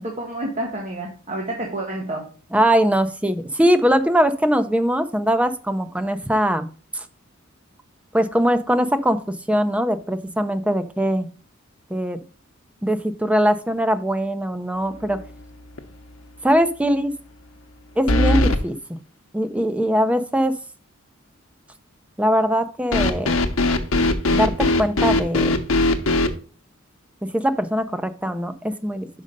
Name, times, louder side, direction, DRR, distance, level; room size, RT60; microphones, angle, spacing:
voice 1, 0.0-2.3, right 1 dB, 35° right, -1 dB, 1.1 m, -29 dB
voice 2, 2.5-6.7 6.9-7.0 8.1-11.3 11.9-12.2 12.8-15.2 16.4-17.1 18.0-19.0 19.3-20.5 22.2-23.3 24.3-25.6 27.2-29.1, equal, 5° right, 9 dB, 0.5 m, -21 dB
sound 1, 15.0-15.4 15.8-15.9 18.1-18.6 22.9-26.3, left 2 dB, 80° left, 0.8 m, -19 dB
5.4 x 5.2 x 5.1 m, 0.40 s
head